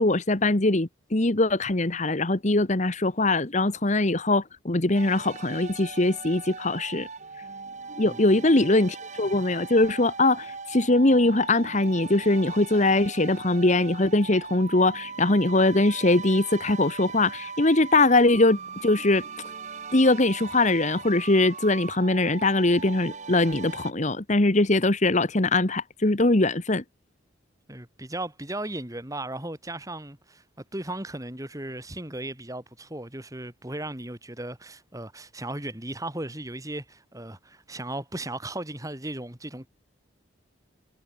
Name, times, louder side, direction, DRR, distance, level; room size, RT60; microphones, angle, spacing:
voice 1, 0.0-7.1 8.0-19.2 19.9-26.8, left 2 dB, 40° left, 1.4 m, -22 dB
sound 1, 4.9-23.9, right 5 dB, 40° right, 1.5 m, -39 dB
voice 2, 8.0-8.4 27.7-30.4 30.7-39.7, right 1 dB, 15° right, 3.3 m, -36 dB
head